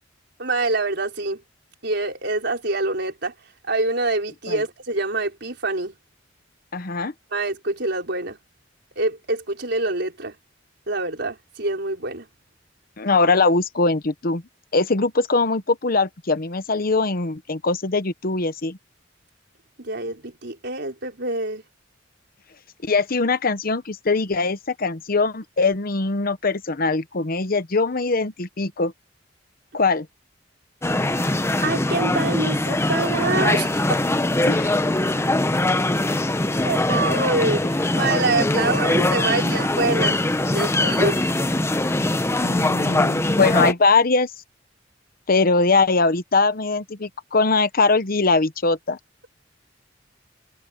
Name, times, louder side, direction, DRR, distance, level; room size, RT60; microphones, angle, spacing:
voice 1, 0.4-1.4 1.8-3.3 3.7-6.0 7.3-8.4 9.0-10.3 10.9-12.3 19.8-21.6 31.6-34.0 36.6-40.1 40.5-41.2, right 2 dB, 65° right, 4.9 m, -25 dB
voice 2, 6.7-7.1 13.0-14.4 14.7-18.8 22.8-28.9 29.7-30.1 34.5-34.8 42.4-44.3 45.3-49.0, left 3 dB, 50° left, 1.0 m, -21 dB
sound 1, 30.8-43.7, left 1 dB, 15° left, 0.8 m, -22 dB
head